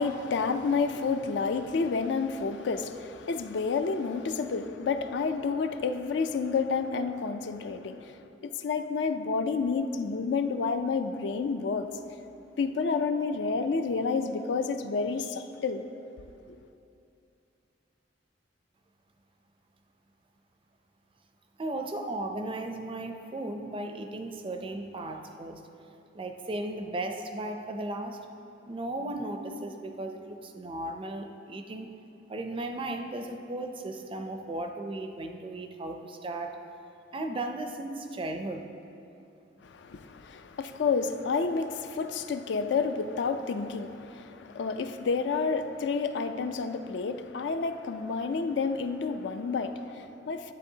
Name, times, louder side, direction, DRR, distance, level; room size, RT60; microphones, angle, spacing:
voice 1, 0.0-8.1 8.4-11.9 12.6-15.8 39.6-50.5, left 4 dB, 65° left, 0.4 m, -30 dB
voice 2, 21.6-25.6 26.1-28.2 28.7-31.9 32.3-36.6 37.1-38.7, right 2 dB, 30° right, 0.4 m, -36 dB
10.5 x 8.0 x 2.7 m
head